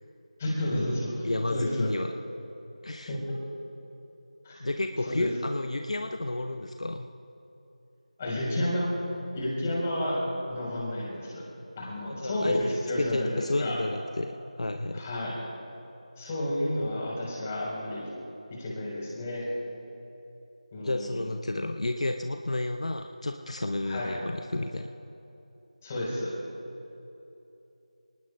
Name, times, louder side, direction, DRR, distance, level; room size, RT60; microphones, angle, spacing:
voice 1, 0.4-1.9 3.1-3.2 4.4-4.6 5.1-5.3 8.2-8.9 9.3-10.2 10.5-11.4 11.8-12.5 12.9-13.3 13.6-13.8 14.9-15.3 16.2-18.1 18.5-19.5 20.7-21.2 23.9-24.1 25.8-26.3, left 1 dB, 20° left, -4 dB, 4.0 m, -31 dB
voice 2, 1.2-2.1 2.8-3.1 4.6-7.1 12.0-15.0 20.8-24.9, left 2 dB, 60° left, 5 dB, 0.8 m, -31 dB
29.0 x 19.0 x 2.2 m, 3.0 s
figure-of-eight pair, 170°, 4 cm